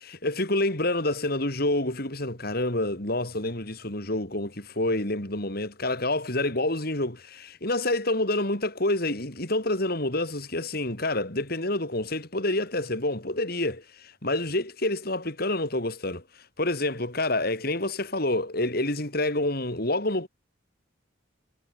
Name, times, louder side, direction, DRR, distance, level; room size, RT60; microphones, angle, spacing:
voice 1, 0.0-16.2 16.6-20.3, left 2 dB, 50° left, 4.7 m, -28 dB
head